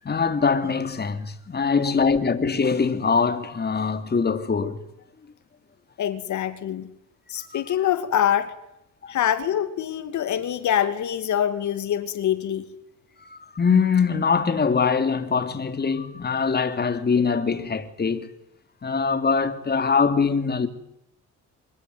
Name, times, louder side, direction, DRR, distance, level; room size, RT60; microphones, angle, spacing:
voice 1, 0.0-4.8 7.4-7.6 9.0-9.1 13.2-18.3 18.8-20.7, left 5 dB, 35° left, 2.9 m, -23 dB
voice 2, 6.0-6.9 7.3-8.5 9.1-12.7, left 10 dB, 70° left, 2.4 m, -25 dB
26.0 x 21.5 x 9.5 m
cardioid pair, 90°, 30 cm